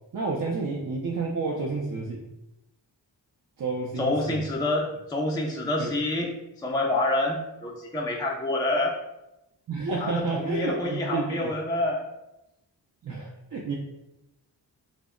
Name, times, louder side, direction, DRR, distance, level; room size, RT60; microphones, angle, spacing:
voice 1, 0.1-2.3 3.6-4.4 5.8-5.9 9.7-11.5 13.0-13.7, right 3 dB, 50° right, -3 dB, 0.5 m, -30 dB
voice 2, 4.0-9.0 10.0-12.0, left 2 dB, 10° left, -1 dB, 0.4 m, -27 dB
2.1 x 2.1 x 3.6 m, 0.90 s
cardioid pair, 50°, 44 cm